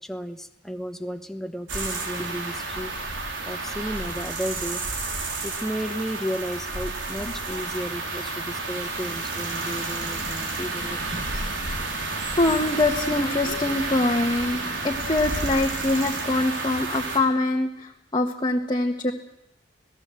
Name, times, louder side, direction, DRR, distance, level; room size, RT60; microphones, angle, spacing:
voice 1, 0.0-3.0 3.4-4.8 5.4-11.5, equal, ahead, 7 dB, 1.2 m, -33 dB
sound 1, 1.7-17.2, right 3 dB, 85° right, 4.2 m, -31 dB
voice 2, 7.2-7.6 12.4-19.1, left 2 dB, 25° left, 1 dB, 1.5 m, -24 dB
sound 2, 9.0-16.5, right 1 dB, 50° right, 3.1 m, -42 dB
27.0 x 18.0 x 7.8 m, 0.86 s
head